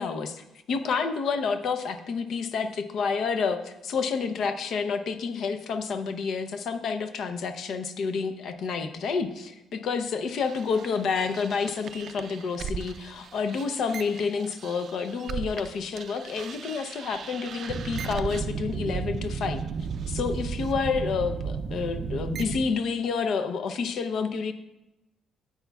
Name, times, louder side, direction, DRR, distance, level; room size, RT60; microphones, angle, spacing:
voice 1, 0.0-19.6 20.1-24.5, left 5 dB, 65° left, 8 dB, 0.7 m, -29 dB
sound 1, 10.4-15.7 16.0-22.7, right 6 dB, 55° right, 0.4 m, -35 dB
9.9 x 8.3 x 2.3 m, 0.95 s
cardioid pair, 130°, 0 cm